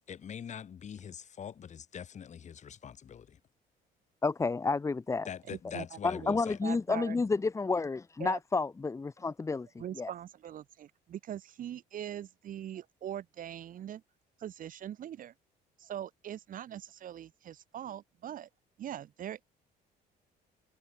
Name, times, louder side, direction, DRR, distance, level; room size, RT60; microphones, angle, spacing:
voice 1, 0.1-3.4 5.3-6.6, left 8 dB, 45° left, 3.9 m, -43 dB
voice 2, 4.2-5.3 6.0-9.7 10.0-10.1, left 4 dB, 15° left, 0.9 m, -30 dB
voice 3, 5.5-6.4 6.6-7.2 8.2-8.4 9.8-14.0 14.4-15.3 15.8-18.5 18.8-19.4, right 10 dB, 55° right, 1.4 m, -42 dB
cardioid pair, 110°, 17 cm